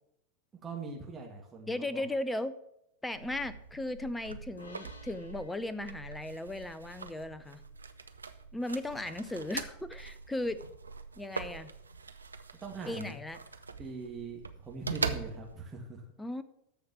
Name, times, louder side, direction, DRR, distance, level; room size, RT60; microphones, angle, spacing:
voice 1, 0.6-2.0 12.6-13.2 13.8-16.0, right 4 dB, 15° right, -1 dB, 2.1 m, -42 dB
voice 2, 1.7-2.5 3.0-7.6 8.5-10.6 11.2-11.7 12.9-13.4 16.2-16.4, left 1 dB, 10° left, 14 dB, 0.7 m, -36 dB
sound 1, 3.1-15.7, right 4 dB, 75° right, 0.7 m, -42 dB
sound 2, 4.6-8.0, left 3 dB, 70° left, 2.4 m, -57 dB
13.5 x 5.2 x 7.1 m, 0.78 s
figure-of-eight pair, 90°, 0 cm